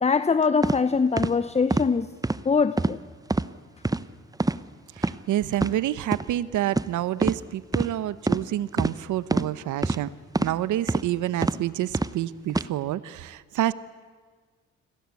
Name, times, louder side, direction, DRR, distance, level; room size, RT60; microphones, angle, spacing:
voice 1, 0.0-2.1 2.4-3.0, left 5 dB, 20° left, 0.9 m, -22 dB
sound 1, 0.6-0.8 1.2-1.3 1.7-1.9 2.2-2.4 2.8-3.0 3.3-3.5 3.8-4.0 4.4-4.6 5.0-5.1 5.5-5.7 6.1-6.2 6.7-6.9 7.2-7.4 7.7-7.9 8.3-8.4 8.8-8.9 9.3-9.5 9.8-10.0 10.3-10.5 10.9-11.1 11.4-11.6 11.9-12.1 12.5-12.7, right 2 dB, 10° right, 0.9 m, -25 dB
voice 2, 4.9-10.1 10.4-13.7, right 13 dB, 80° right, 1.0 m, -28 dB
29.0 x 21.5 x 8.4 m
cardioid pair, 90°, 30 cm